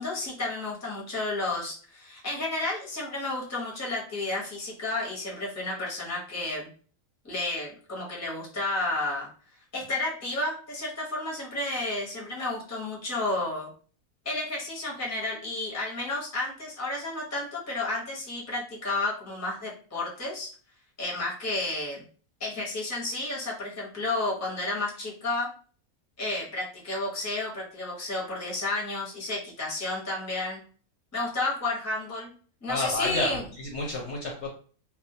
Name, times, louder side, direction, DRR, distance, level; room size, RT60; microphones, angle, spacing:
voice 1, 0.0-6.7 7.2-9.3 9.7-13.7 14.2-20.5 21.0-22.0 22.4-25.5 26.2-30.6 31.1-32.3 32.6-33.4, left 2 dB, 15° left, -5 dB, 0.6 m, -31 dB
voice 2, 32.7-34.5, left 2 dB, 65° left, -1 dB, 0.8 m, -30 dB
2.2 x 2.1 x 2.6 m, 0.42 s
omnidirectional pair, 1.4 m